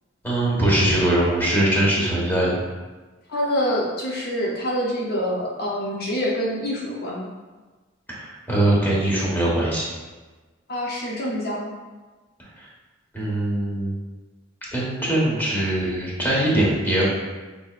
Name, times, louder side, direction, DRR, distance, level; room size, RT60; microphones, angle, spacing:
voice 1, 0.2-2.6 8.2-9.8 12.6-12.7 13.1-13.9 14.7-17.1, right 1 dB, 10° left, -6 dB, 1.3 m, -21 dB
voice 2, 3.3-7.3 10.7-11.7, equal, 55° left, -3 dB, 0.7 m, -26 dB
5.7 x 3.5 x 2.5 m, 1.3 s
head